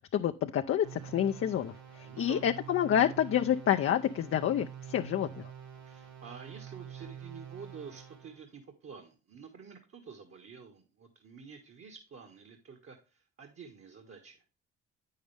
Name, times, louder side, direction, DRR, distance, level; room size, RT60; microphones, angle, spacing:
voice 1, 0.1-1.7 2.2-5.4, left 10 dB, 45° left, 5 dB, 0.6 m, -28 dB
sound 1, 0.8-8.4, right 9 dB, 65° right, 3.0 m, -47 dB
voice 2, 2.0-2.5 5.9-14.4, right 6 dB, 50° right, 5 dB, 1.6 m, -49 dB
8.7 x 6.5 x 3.4 m, 0.31 s
supercardioid pair, 60°, 29 cm